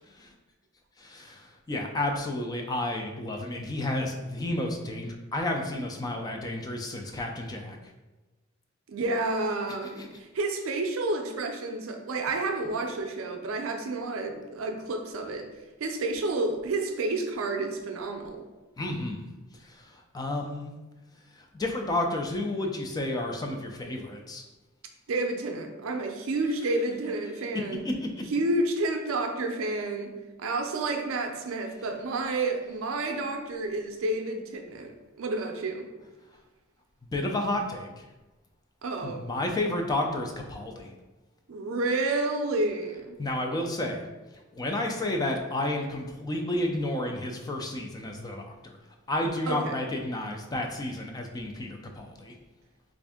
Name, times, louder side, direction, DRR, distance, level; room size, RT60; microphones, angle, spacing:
voice 1, 1.0-7.8 10.0-10.1 18.8-19.3 19.6-20.7 21.3-24.4 27.8-28.2 37.1-38.1 39.0-40.9 43.2-44.0 44.5-48.8 49.1-52.3, left 1 dB, 20° left, 3 dB, 0.3 m, -31 dB
voice 2, 8.9-15.5 15.8-18.4 25.1-27.8 28.3-35.9 38.8-39.2 41.5-43.2 49.5-49.8, right 2 dB, 75° right, 4 dB, 0.5 m, -30 dB
3.4 x 2.5 x 3.5 m, 1.1 s
head